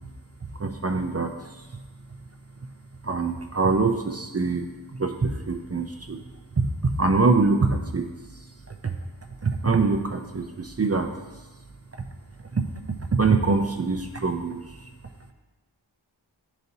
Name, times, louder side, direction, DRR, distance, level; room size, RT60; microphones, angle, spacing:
voice 1, 0.6-1.3 3.0-4.7 5.0-6.2 6.6-8.1 8.7-9.0 9.4-11.1 12.5-12.6 13.1-14.6, right 4 dB, 35° right, 4 dB, 0.5 m, -24 dB
11.0 x 4.1 x 2.7 m, 1.2 s
wide cardioid pair, 40°, 46 cm